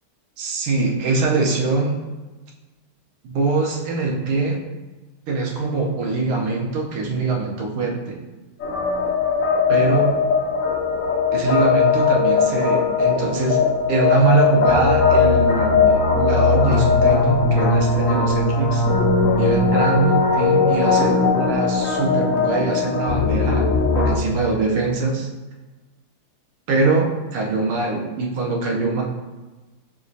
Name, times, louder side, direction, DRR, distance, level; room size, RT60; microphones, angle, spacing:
voice 1, 0.4-2.0 3.2-4.6 5.3-8.2 9.7-10.2 11.3-13.6 13.9-18.8 19.3-23.6 23.9-25.3 26.7-29.0, right 3 dB, 85° right, 0 dB, 1.7 m, -22 dB
sound 1, 8.6-24.2, left 4 dB, 85° left, 0.7 m, -19 dB
5.4 x 2.9 x 2.7 m, 1.2 s
omnidirectional pair, 2.4 m